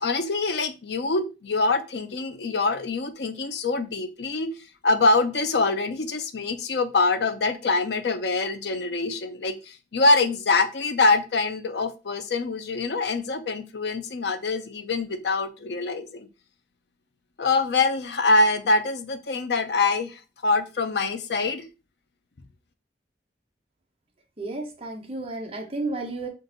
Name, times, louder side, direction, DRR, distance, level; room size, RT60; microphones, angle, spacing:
voice 1, 0.0-4.5 4.8-16.3 17.4-21.6, left 3 dB, 70° left, 0.6 m, -24 dB
voice 2, 24.4-26.3, right 2 dB, 35° right, 0.9 m, -32 dB
3.9 x 2.6 x 3.9 m
head